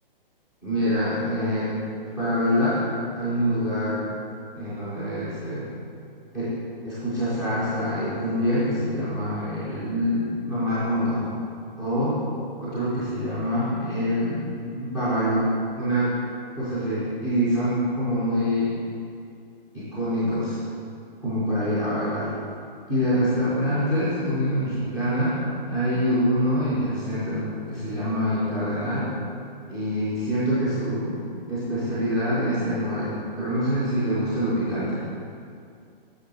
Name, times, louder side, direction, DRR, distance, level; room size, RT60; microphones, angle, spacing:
voice 1, 0.6-1.8 2.2-2.9 3.2-4.0 4.6-5.7 6.3-6.5 6.8-11.2 11.8-12.2 12.6-15.4 15.8-16.1 16.6-18.7 19.7-20.6 21.2-22.3 22.9-25.4 25.7-29.1 29.7-31.2 31.5-33.1 33.4-35.0, equal, 5° left, -11 dB, 0.3 m, -25 dB
7.9 x 6.0 x 3.2 m, 2.4 s
figure-of-eight pair, 125°, 29 cm